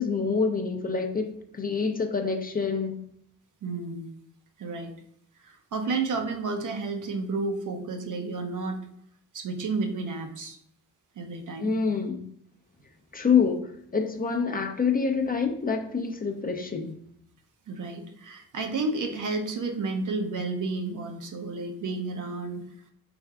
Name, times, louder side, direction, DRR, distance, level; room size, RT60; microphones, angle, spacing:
voice 1, 0.0-3.0 11.6-12.2 13.1-16.9, left 5 dB, 25° left, 4 dB, 0.5 m, -26 dB
voice 2, 3.6-4.1 4.6-4.9 5.4-8.8 9.3-10.6 11.2-11.7 17.7-22.6, right 3 dB, 60° right, 4 dB, 0.7 m, -31 dB
3.4 x 3.4 x 2.3 m, 0.68 s
supercardioid pair, 50°, 36 cm